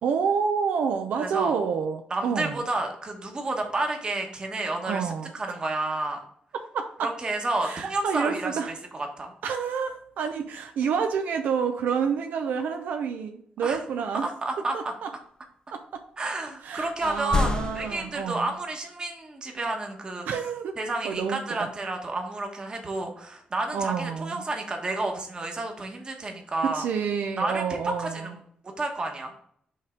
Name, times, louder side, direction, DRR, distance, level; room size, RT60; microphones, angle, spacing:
voice 1, 0.0-2.6 4.9-5.3 6.7-7.1 7.6-8.8 9.4-14.3 14.7-15.1 15.7-16.0 16.6-18.5 20.2-20.8 21.0-21.7 23.7-24.4 26.7-28.3, right 6 dB, 80° right, 6 dB, 0.5 m, -29 dB
voice 2, 1.2-1.5 2.1-6.2 7.0-8.6 8.9-9.3 13.6-13.8 14.2-14.8 16.2-20.3 20.8-26.9 27.4-28.4 28.8-29.3, right 2 dB, 30° right, 3 dB, 1.2 m, -30 dB
sound 1, 17.0-18.6 21.1-21.2, left 4 dB, 25° left, 0.3 m, -29 dB
5.4 x 3.5 x 5.0 m, 0.63 s
cardioid pair, 120°, 3 cm